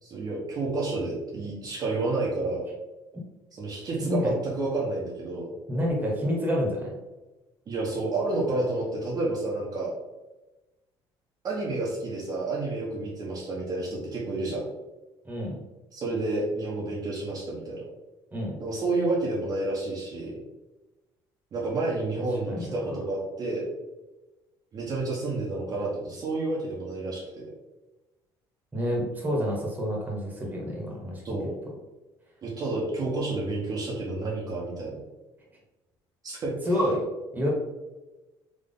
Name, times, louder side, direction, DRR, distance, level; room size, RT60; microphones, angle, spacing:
voice 1, 0.0-2.7 3.5-5.5 7.7-9.9 11.4-14.6 15.9-17.8 18.6-20.3 21.5-23.7 24.7-27.4 31.2-31.5 32.4-35.0 36.2-36.5, right 2 dB, 45° right, -5 dB, 1.1 m, -30 dB
voice 2, 5.7-6.9 15.2-15.6 18.3-18.6 22.2-22.7 28.7-31.2 36.6-37.0 37.3-37.5, equal, 20° right, -2 dB, 1.4 m, -28 dB
3.7 x 3.1 x 3.8 m, 1.1 s
cardioid pair, 110°, 9 cm